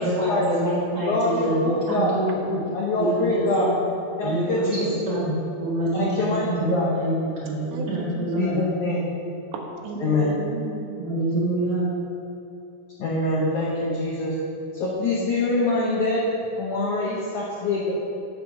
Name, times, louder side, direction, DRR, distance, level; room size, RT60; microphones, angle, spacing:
voice 1, 0.0-2.6 3.0-3.7 4.2-5.3 5.6-7.1 7.4-8.6 11.0-11.9, right 1 dB, 40° right, -8 dB, 1.4 m, -26 dB
voice 2, 1.1-2.1 2.7-3.7 4.2-5.0 5.9-6.9 8.4-9.0 10.0-10.3 13.0-14.3 14.8-16.3 16.6-17.9, left 2 dB, 85° left, -4 dB, 1.7 m, -24 dB
voice 3, 7.7-8.5 9.5-11.0, right 4 dB, 90° right, 2 dB, 3.1 m, -34 dB
9.1 x 4.7 x 6.4 m, 2.6 s
omnidirectional pair, 4.9 m